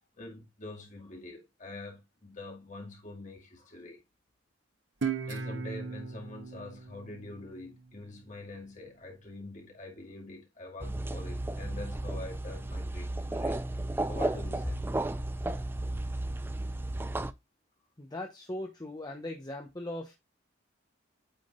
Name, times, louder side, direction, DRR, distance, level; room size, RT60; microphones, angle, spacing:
voice 1, 0.2-4.0 5.2-15.0, left 2 dB, 40° left, 2.1 m, -45 dB
Guitar, 5.0-8.2, right 5 dB, 65° right, 1.0 m, -37 dB
sound 1, 10.8-17.3, right 2 dB, 10° right, 0.3 m, -33 dB
voice 2, 18.0-20.1, left 1 dB, 20° left, 0.8 m, -39 dB
8.9 x 3.8 x 3.7 m
head